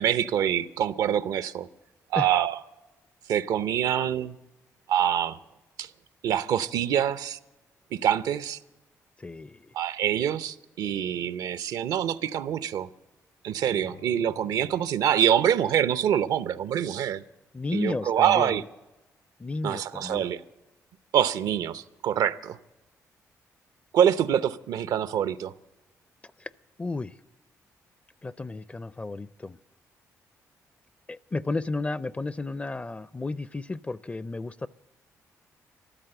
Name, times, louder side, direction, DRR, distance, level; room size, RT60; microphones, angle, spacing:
voice 1, 0.0-1.7 2.1-2.6 3.3-4.3 4.9-5.4 5.8-5.9 6.2-7.4 7.9-8.6 9.7-12.9 13.4-17.2 17.7-18.6 19.6-20.4 21.1-22.6 23.9-25.5, right 10 dB, 80° right, 0.6 m, -25 dB
voice 2, 9.2-9.7 17.5-18.6 19.4-20.2 26.8-27.1 28.2-29.6 31.1-34.7, left 3 dB, 20° left, 0.4 m, -33 dB
sound 1, 13.6-16.3, left 7 dB, 80° left, 2.7 m, -52 dB
14.0 x 12.5 x 7.8 m
cardioid pair, 75°, 6 cm